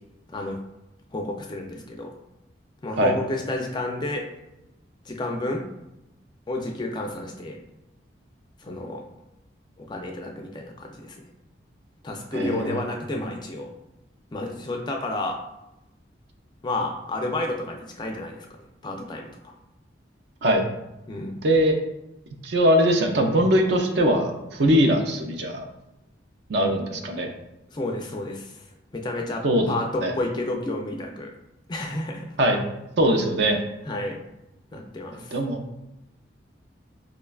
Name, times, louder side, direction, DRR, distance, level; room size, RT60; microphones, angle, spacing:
voice 1, 0.3-0.6 1.1-2.1 2.8-4.3 5.1-5.6 6.5-7.6 8.6-9.0 9.8-11.2 12.0-13.7 14.3-15.4 16.6-18.5 18.8-19.5 21.1-21.3 27.7-28.6 28.9-31.3 31.7-32.2 33.9-34.2 34.7-35.3, left 2 dB, 25° left, 2 dB, 0.3 m, -30 dB
voice 2, 12.3-12.8 20.4-20.6 21.4-21.7 22.4-25.7 26.5-27.3 29.4-29.6 30.0-30.1 32.4-32.6 33.0-33.6 35.3-35.6, equal, 65° right, 4 dB, 0.5 m, -21 dB
4.8 x 2.2 x 2.3 m, 0.91 s
head